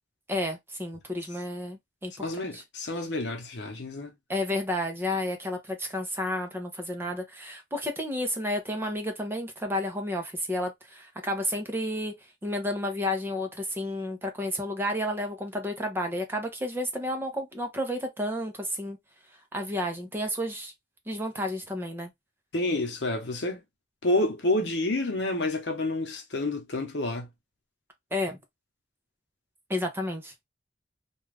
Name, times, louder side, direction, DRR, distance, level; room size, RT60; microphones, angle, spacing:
voice 1, 0.3-2.3 2.5-2.6 4.3-12.1 12.4-19.0 19.5-20.7 21.1-22.1 28.1-28.4 29.7-30.3, left 1 dB, 15° right, 0.7 m, -31 dB
voice 2, 2.2-4.1 22.5-23.6 24.0-27.3, left 2 dB, 80° left, 0.8 m, -29 dB
2.5 x 2.3 x 3.2 m
head